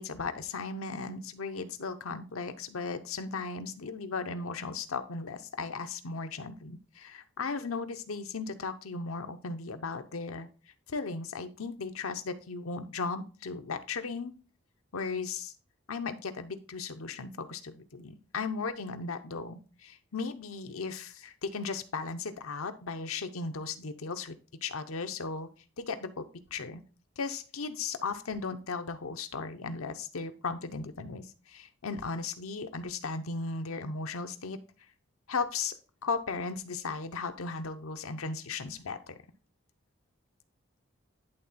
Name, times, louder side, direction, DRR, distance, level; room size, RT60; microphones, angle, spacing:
voice 1, 0.0-10.5 10.9-14.3 14.9-15.5 15.9-24.4 24.6-25.5 25.8-26.8 27.2-34.6 35.3-35.8 36.0-39.2, left 4 dB, 85° left, 9 dB, 0.8 m, -36 dB
11.0 x 3.7 x 4.2 m, 0.36 s
head